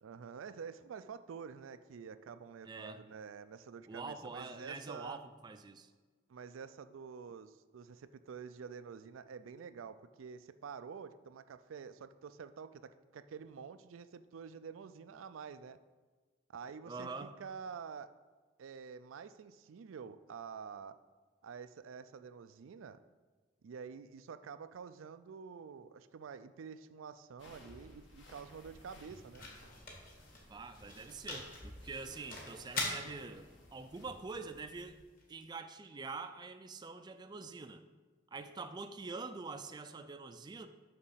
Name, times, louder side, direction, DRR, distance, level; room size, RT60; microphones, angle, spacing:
voice 1, 0.0-5.2 6.3-15.8 16.5-18.1 18.6-21.0 21.4-23.0 23.6-29.5, right 6 dB, 90° right, 12 dB, 0.4 m, -48 dB
voice 2, 2.6-3.0 3.9-5.9 16.9-17.3 30.5-33.5 33.7-35.0 35.3-37.8 38.3-40.7, right 4 dB, 20° right, 9 dB, 0.3 m, -45 dB
sound 1, 27.4-35.0, left 1 dB, 65° left, 1.4 m, -58 dB
sound 2, 28.0-35.9, left 2 dB, 45° left, 1.8 m, -46 dB
6.6 x 6.0 x 5.6 m, 1.3 s
head